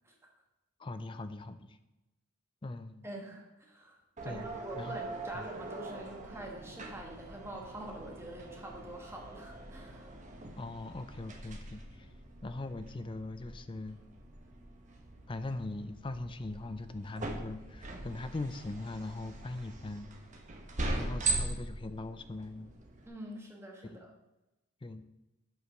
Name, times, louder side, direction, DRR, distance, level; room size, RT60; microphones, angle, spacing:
voice 1, 0.8-1.8 2.6-3.0 4.2-5.0 5.3-5.5 10.6-12.1 12.4-14.0 15.3-20.1 21.0-22.7 23.8-24.0 24.8-25.0, left 2 dB, 25° left, 11 dB, 0.4 m, -41 dB
voice 2, 3.0-4.0 4.2-10.1 21.0-21.5 23.1-24.1, right 1 dB, 10° right, 0 dB, 1.3 m, -45 dB
sound 1, 4.2-23.1, right 2 dB, 35° right, 1.0 m, -41 dB
8.0 x 5.0 x 5.6 m, 0.99 s
head